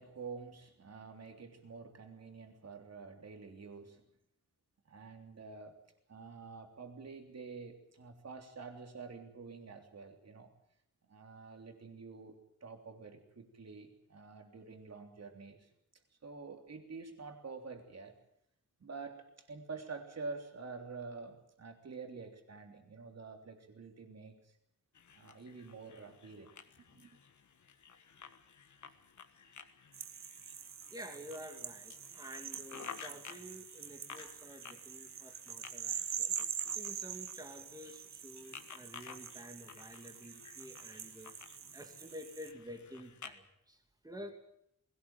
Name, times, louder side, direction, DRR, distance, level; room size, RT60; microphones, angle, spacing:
voice 1, 0.0-4.0 4.8-5.8 6.1-10.5 11.0-15.7 16.2-18.1 18.8-24.6 25.1-26.5 26.9-27.2, right 4 dB, 50° right, 4 dB, 3.4 m, -48 dB
sound 1, 24.9-43.3, left 6 dB, 65° left, 1.5 m, -54 dB
sound 2, 29.9-42.5, right 8 dB, 85° right, 1.4 m, -44 dB
voice 2, 30.9-36.4 36.7-44.3, equal, 10° right, 5 dB, 2.7 m, -50 dB
21.0 x 17.5 x 9.0 m, 0.75 s
wide cardioid pair, 175°, 32 cm